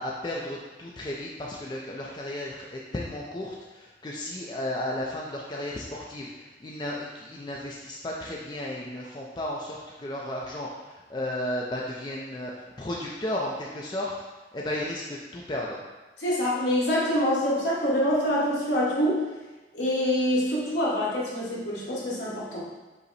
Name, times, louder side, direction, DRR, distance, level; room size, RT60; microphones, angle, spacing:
voice 1, 0.0-14.1 14.5-15.8, left 1 dB, 25° left, -3 dB, 0.4 m, -34 dB
voice 2, 16.2-19.2 19.7-22.6, equal, 80° left, -6 dB, 1.3 m, -25 dB
5.3 x 2.1 x 4.0 m, 1.2 s
head